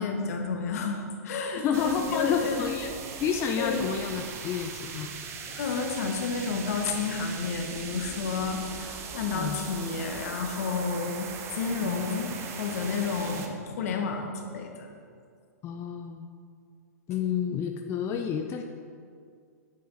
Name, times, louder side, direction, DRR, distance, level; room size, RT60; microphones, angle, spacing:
voice 1, 0.0-2.6 3.6-3.9 5.5-11.3 11.5-14.9, left 4 dB, 65° left, 3 dB, 1.2 m, -31 dB
voice 2, 1.6-2.9 3.2-5.1 9.3-9.6 11.8-12.2 15.6-16.3 17.1-18.6, left 7 dB, 30° left, 4 dB, 0.5 m, -30 dB
sound 1, 1.7-13.5, right 5 dB, 30° right, 0.9 m, -40 dB
8.5 x 6.2 x 4.1 m, 2.2 s
hypercardioid pair, 120°, 9 cm